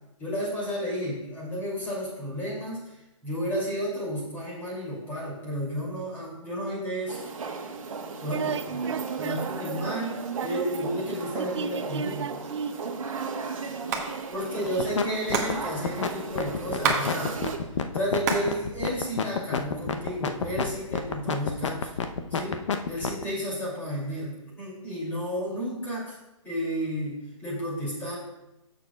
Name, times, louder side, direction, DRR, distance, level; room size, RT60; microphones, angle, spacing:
voice 1, 0.2-2.8 3.2-7.3 8.2-8.5 9.2-10.1 10.4-12.3 14.3-17.4 17.9-21.9 22.3-22.6 22.9-26.1 26.4-28.1, equal, 10° left, -6 dB, 2.6 m, -32 dB
sound 1, 7.1-17.6, right 5 dB, 80° right, 1.2 m, -35 dB
voice 2, 8.3-14.9, right 7 dB, 60° right, 13 dB, 0.5 m, -36 dB
Hands, 13.8-14.1 14.3-14.4 14.6-17.1 17.4-18.5 18.9-19.7 20.2-20.8, right 5 dB, 30° right, 1.0 m, -29 dB
sound 2, 14.6-15.0 15.3-23.2, left 6 dB, 65° left, 0.8 m, -28 dB
12.0 x 6.8 x 2.3 m, 0.92 s
hypercardioid pair, 165°, 17 cm